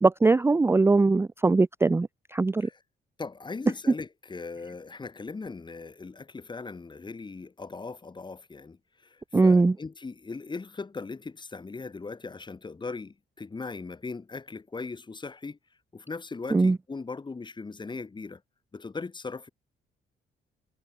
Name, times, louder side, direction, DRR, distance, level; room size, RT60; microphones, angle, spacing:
voice 1, 0.0-2.7 9.3-9.8 16.5-16.8, right 3 dB, 10° right, 0.4 m, -21 dB
voice 2, 3.2-8.8 9.1-15.6 15.9-18.4 18.7-19.5, left 4 dB, 25° left, 1.1 m, -39 dB
cardioid pair, 90°, 20 cm